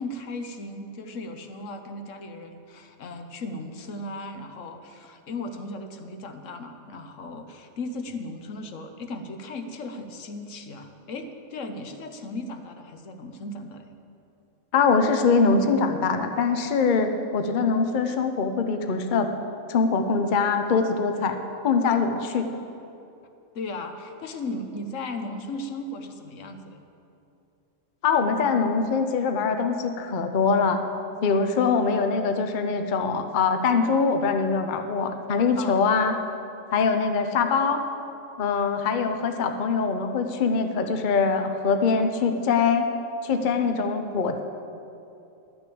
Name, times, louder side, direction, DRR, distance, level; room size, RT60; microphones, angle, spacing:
voice 1, 0.0-13.9 23.5-26.8 35.6-35.9, left 2 dB, 75° left, 7 dB, 1.2 m, -36 dB
voice 2, 14.7-19.3 19.7-21.4 21.6-22.5 28.0-30.8 31.2-36.2 36.7-37.8 38.4-42.9 43.2-44.4, left 5 dB, 45° left, 6 dB, 0.8 m, -23 dB
12.0 x 6.3 x 8.6 m, 2.8 s
omnidirectional pair, 1.3 m